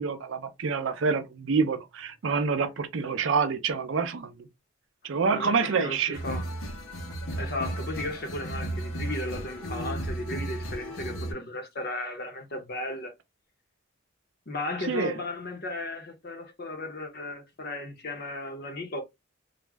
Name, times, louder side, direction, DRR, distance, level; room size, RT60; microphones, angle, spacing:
voice 1, 0.0-4.5 5.0-6.2 14.9-15.2, right 5 dB, 65° right, 0.5 m, -27 dB
voice 2, 5.3-6.5 7.3-13.1 14.5-19.0, left 2 dB, 50° left, 0.7 m, -35 dB
sound 1, 6.1-11.3, right 1 dB, 80° left, 0.8 m, -34 dB
2.4 x 2.0 x 3.3 m
head